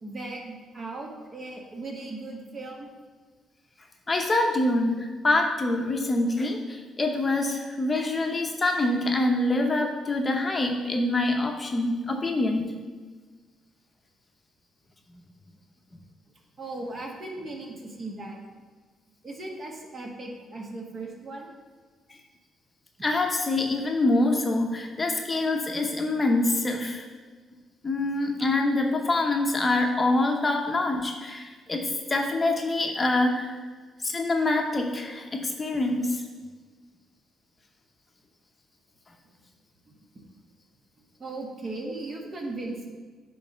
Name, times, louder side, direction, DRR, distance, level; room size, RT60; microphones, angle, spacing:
voice 1, 0.0-2.9 16.5-18.4 19.2-21.5 39.8-40.0 41.2-42.9, right 2 dB, 40° right, 1 dB, 1.4 m, -37 dB
voice 2, 4.1-12.7 22.1-22.2 23.0-27.1 27.8-33.6 34.0-36.2, left 2 dB, 25° left, 2 dB, 0.7 m, -25 dB
8.7 x 3.2 x 5.5 m, 1.4 s
cardioid pair, 90°, 0 cm